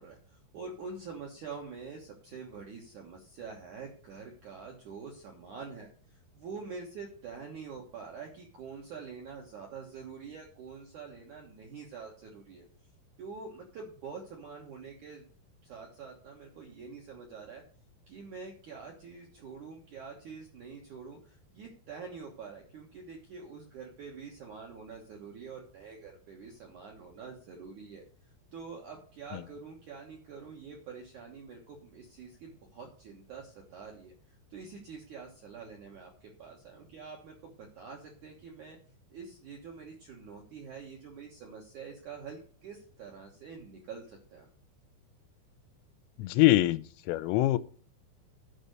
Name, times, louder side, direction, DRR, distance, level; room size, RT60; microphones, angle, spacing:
voice 1, 0.0-12.6 13.2-15.2 15.6-17.6 18.1-28.0 28.5-34.1 34.5-38.8 39.1-44.5, right 5 dB, 65° right, 0 dB, 1.9 m, -46 dB
voice 2, 46.2-47.6, left 16 dB, 90° left, 13 dB, 3.3 m, -24 dB
11.5 x 5.2 x 6.7 m, 0.43 s
omnidirectional pair, 5.7 m